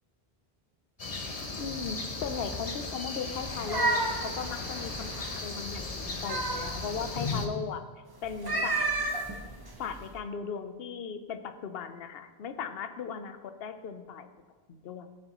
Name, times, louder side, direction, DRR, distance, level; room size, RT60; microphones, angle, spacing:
sound 1, 1.0-7.5, left 3 dB, 40° left, 0.9 m, -36 dB
voice 1, 1.6-7.8 8.2-8.9 9.8-14.3 14.7-15.1, left 6 dB, 70° left, 9 dB, 0.9 m, -37 dB
sound 2, 3.4-5.5 5.9-7.1 8.3-10.1, right 2 dB, 25° right, 0.9 m, -32 dB
14.5 x 7.6 x 3.0 m, 1.4 s
omnidirectional pair, 1.0 m